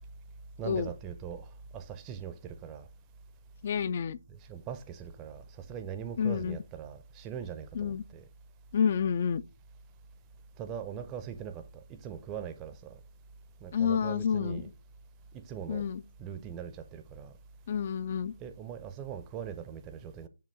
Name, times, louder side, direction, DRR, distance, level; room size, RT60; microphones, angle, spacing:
voice 1, 0.6-1.5 1.7-2.9 4.3-5.4 5.7-8.2 10.6-11.6 11.9-12.9 13.6-14.7 15.3-15.8 16.2-17.3 18.4-20.3, right 8 dB, 15° right, 0.6 m, -41 dB
voice 2, 3.6-4.2 6.2-6.6 7.7-8.0 8.7-9.4 13.7-14.6 15.7-16.0 17.7-18.3, left 7 dB, 35° left, 0.3 m, -29 dB
6.7 x 2.9 x 5.4 m
figure-of-eight pair, 155°, 0 cm